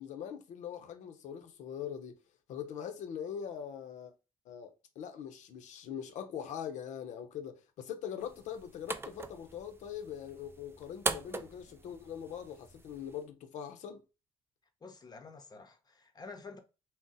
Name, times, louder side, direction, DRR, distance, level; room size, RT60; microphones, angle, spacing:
voice 1, 0.0-2.1 2.5-4.1 4.5-14.0, left 8 dB, 80° left, 0.6 m, -42 dB
sound 1, 8.2-13.2, right 3 dB, 20° right, 0.3 m, -41 dB
voice 2, 14.8-16.6, left 4 dB, 35° left, 0.6 m, -49 dB
2.5 x 2.0 x 3.8 m
cardioid pair, 80°, 12 cm